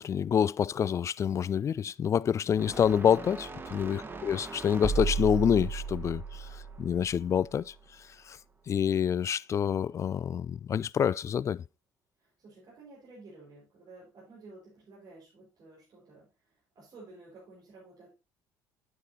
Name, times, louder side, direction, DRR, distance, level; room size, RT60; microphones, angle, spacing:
voice 1, 0.0-7.7 8.3-8.4 8.7-11.6, left 8 dB, 35° left, 0.3 m, -27 dB
sound 1, 2.5-7.8, right 5 dB, 25° right, 1.5 m, -36 dB
voice 2, 4.0-4.3 12.2-18.1, right 3 dB, 50° right, 5.2 m, -52 dB
9.5 x 8.2 x 2.8 m
hypercardioid pair, 70°, 8 cm